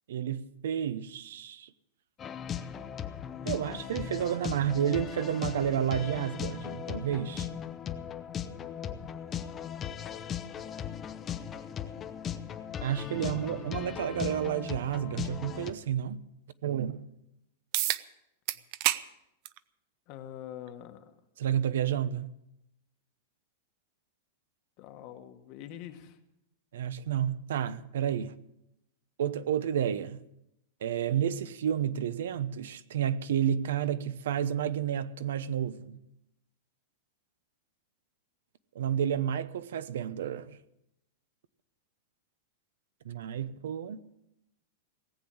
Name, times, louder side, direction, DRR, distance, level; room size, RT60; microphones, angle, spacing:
voice 1, 0.1-1.7 3.5-7.5 12.8-16.2 16.6-17.0 21.4-22.3 26.7-28.3 29.2-30.2 30.8-36.0 38.7-40.6 43.0-44.0, right 9 dB, 80° right, 0.9 m, -31 dB
sound 1, 2.2-15.7, left 9 dB, 15° left, 0.6 m, -38 dB
sound 2, 17.7-18.0 18.5-19.0 19.4-19.6 20.7-20.8 25.7-25.8, right 15 dB, 40° right, 0.5 m, -28 dB
voice 2, 20.1-21.1 24.8-26.2, left 11 dB, 35° left, 1.1 m, -45 dB
18.0 x 8.1 x 8.7 m
supercardioid pair, 170°, 0 cm